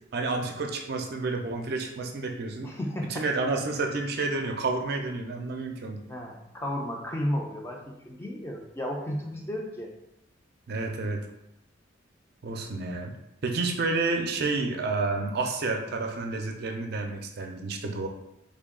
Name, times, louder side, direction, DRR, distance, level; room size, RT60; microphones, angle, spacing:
voice 1, 0.1-2.7 3.1-6.0 10.7-11.3 12.4-13.1 13.4-18.1, right 3 dB, 55° right, 4 dB, 0.4 m, -30 dB
voice 2, 2.6-3.2 6.1-9.9, equal, 15° left, 0 dB, 0.4 m, -33 dB
3.4 x 2.2 x 3.6 m, 0.87 s
head